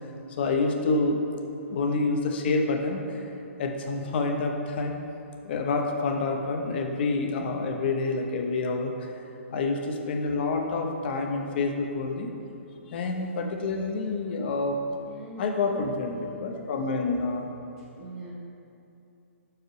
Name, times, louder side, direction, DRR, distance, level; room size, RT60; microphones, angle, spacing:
voice 1, 0.4-1.2 1.7-3.3 3.6-4.9 5.4-9.2 9.5-12.3 12.9-14.8 15.4-17.5, left 3 dB, 50° left, 3 dB, 0.7 m, -28 dB
voice 2, 15.1-16.5 17.9-18.3, right 1 dB, 25° right, -7 dB, 0.8 m, -41 dB
6.4 x 4.7 x 3.2 m, 2.8 s
hypercardioid pair, 140°, 7 cm